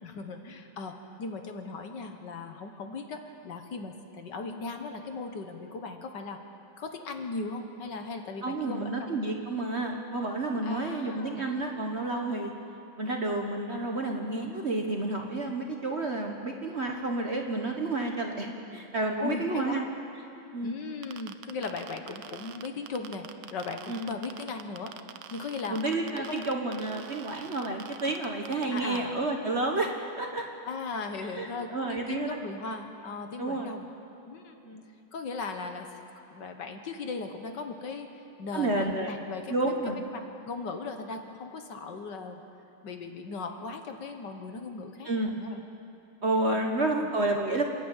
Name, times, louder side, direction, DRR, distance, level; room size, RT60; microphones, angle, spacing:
voice 1, 0.0-6.4 6.8-9.1 10.6-11.4 19.2-19.8 20.6-24.9 25.3-25.8 26.2-26.5 28.7-29.1 30.7-33.9 34.3-34.6 35.1-35.9 36.3-42.4 42.8-45.6 46.5-47.1, left 4 dB, 60° left, 5 dB, 1.8 m, -38 dB
voice 2, 8.4-12.5 13.0-19.9 20.5-20.8 23.9-24.1 25.7-29.9 30.2-30.4 31.3-32.4 33.4-33.8 34.6-34.8 38.5-39.2 39.5-40.0 45.0-45.3 46.2-47.6, right 2 dB, 40° right, 2 dB, 1.3 m, -30 dB
sound 1, 21.0-29.0, right 10 dB, 80° right, 1.6 m, -45 dB
27.5 x 11.0 x 8.9 m, 2.8 s
omnidirectional pair, 2.2 m